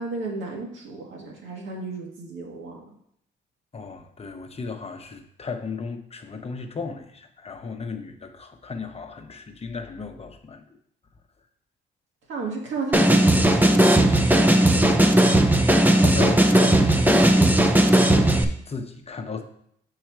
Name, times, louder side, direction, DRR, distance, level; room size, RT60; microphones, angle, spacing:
voice 1, 0.0-2.8 12.3-15.3, right 4 dB, 75° right, -1 dB, 1.9 m, -33 dB
voice 2, 3.7-10.6 15.9-19.4, left 4 dB, 30° left, 5 dB, 0.8 m, -35 dB
sound 1, 12.9-18.4, right 1 dB, 10° right, 0.6 m, -17 dB
6.1 x 4.7 x 4.6 m, 0.70 s
cardioid pair, 90°, 20 cm